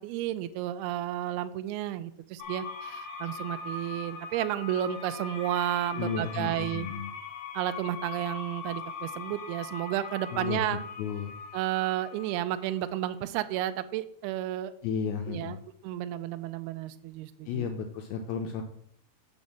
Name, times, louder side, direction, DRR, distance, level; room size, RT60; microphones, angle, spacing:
voice 1, 0.0-6.9 7.5-10.8 11.5-14.7 15.3-15.6 15.8-17.7, right 13 dB, 85° right, 10 dB, 2.3 m, -32 dB
sound 1, 2.4-13.1, left 4 dB, 65° left, 2.9 m, -41 dB
voice 2, 6.0-7.1 10.3-11.4 14.8-15.6 17.5-18.6, left 6 dB, 80° left, 4 dB, 2.2 m, -33 dB
6.3 x 5.4 x 7.1 m, 0.69 s
omnidirectional pair, 5.0 m